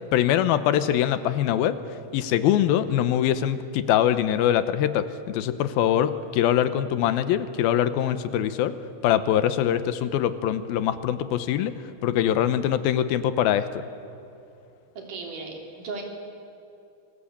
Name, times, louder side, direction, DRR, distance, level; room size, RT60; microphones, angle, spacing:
voice 1, 0.1-1.8 2.1-8.7 9.0-11.7 12.0-13.7, left 10 dB, 85° left, 13 dB, 2.8 m, -23 dB
voice 2, 15.0-16.0, right 4 dB, 60° right, 1 dB, 4.8 m, -36 dB
27.5 x 20.0 x 8.6 m, 2.6 s
omnidirectional pair, 4.3 m